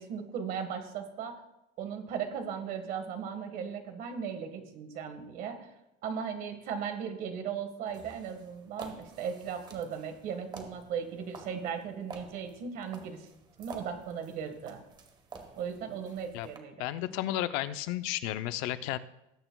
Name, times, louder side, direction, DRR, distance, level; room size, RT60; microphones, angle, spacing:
voice 1, 0.0-1.4 1.8-5.6 6.0-13.3 13.6-14.8 15.6-17.0, right 7 dB, 50° right, 6 dB, 1.6 m, -37 dB
sound 1, 7.9-16.6, right 4 dB, 25° right, 1.1 m, -50 dB
voice 2, 16.8-19.0, left 14 dB, 80° left, 12 dB, 0.6 m, -33 dB
19.5 x 9.0 x 2.3 m, 0.90 s
cardioid pair, 165°, 18 cm